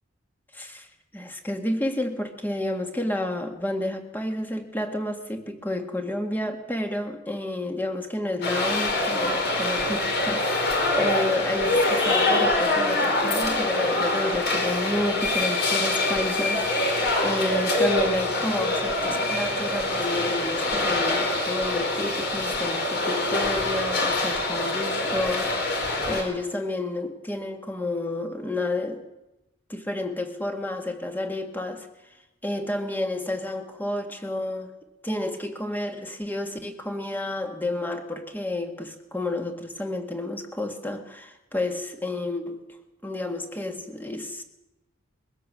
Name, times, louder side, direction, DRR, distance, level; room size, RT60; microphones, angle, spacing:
voice 1, 0.5-0.9 1.1-25.7 26.1-29.0 29.7-31.9 32.4-34.7 35.0-42.6 43.0-44.4, left 1 dB, 10° left, 5 dB, 1.8 m, -30 dB
sound 1, 8.4-26.2, left 2 dB, 50° left, 4.7 m, -25 dB
22.0 x 16.5 x 7.5 m, 0.97 s
head